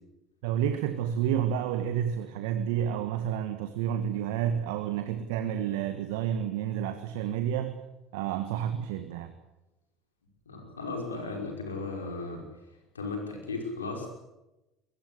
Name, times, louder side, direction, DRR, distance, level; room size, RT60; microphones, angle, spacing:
voice 1, 0.4-7.8 8.1-9.3, right 9 dB, 70° right, 9 dB, 1.7 m, -30 dB
voice 2, 10.5-12.4 12.9-14.1, left 3 dB, 85° left, 2 dB, 5.5 m, -35 dB
23.0 x 20.0 x 8.4 m, 0.97 s
figure-of-eight pair, 65°, 0 cm